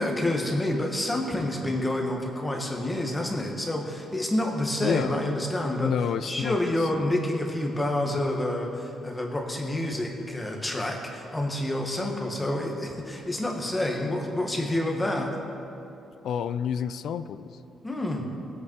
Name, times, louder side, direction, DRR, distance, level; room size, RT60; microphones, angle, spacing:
voice 1, 0.0-5.9 6.2-15.3 17.8-18.2, left 1 dB, 10° left, 0 dB, 1.6 m, -28 dB
voice 2, 4.8-5.2 5.8-7.2 16.2-17.6, left 8 dB, 65° left, 13 dB, 0.4 m, -30 dB
19.5 x 8.3 x 4.7 m, 2.8 s
cardioid pair, 145°, 0 cm